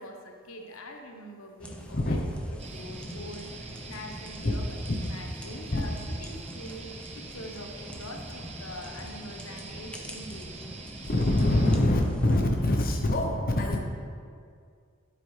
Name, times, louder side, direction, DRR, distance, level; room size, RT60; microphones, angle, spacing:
voice 1, 0.0-10.5, left 1 dB, 85° left, 3 dB, 1.0 m, -44 dB
sound 1, 1.6-12.4, equal, 5° left, 0.6 m, -44 dB
sound 2, 2.6-11.8, right 4 dB, 30° right, 0.7 m, -45 dB
voice 2, 11.0-13.8, left 1 dB, 45° left, 1 dB, 0.8 m, -24 dB
9.7 x 8.5 x 3.3 m, 2.2 s
head